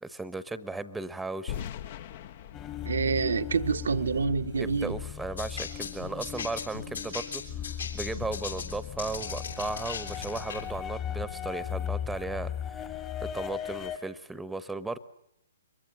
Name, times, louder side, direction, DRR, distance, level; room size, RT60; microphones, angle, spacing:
voice 1, 0.0-1.6 4.6-7.4 7.9-15.0, right 3 dB, 5° right, 1.2 m, -36 dB
sound 1, 1.5-4.4, left 9 dB, 45° left, 1.1 m, -41 dB
sound 2, 2.5-14.0, left 10 dB, 20° left, 1.7 m, -37 dB
voice 2, 2.8-5.0, right 5 dB, 65° right, 1.1 m, -27 dB
sound 3, 5.4-10.7, left 5 dB, 70° left, 6.8 m, -38 dB
25.0 x 22.5 x 7.8 m
figure-of-eight pair, 125°, 0 cm